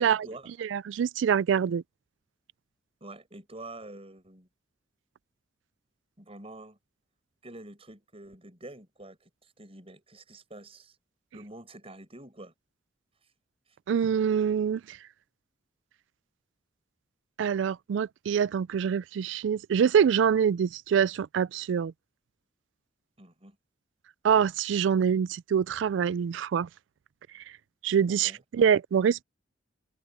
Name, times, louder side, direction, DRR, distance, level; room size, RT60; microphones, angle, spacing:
voice 1, 0.0-0.5 3.0-4.5 6.2-6.8 7.4-11.0 11.3-12.5 23.2-23.6 28.2-28.4, right 2 dB, 30° right, 7.3 m, -46 dB
voice 2, 0.6-1.8 13.9-15.0 17.4-21.9 24.2-26.7 27.3-27.4 27.8-29.2, right 7 dB, 80° right, 0.3 m, -25 dB
head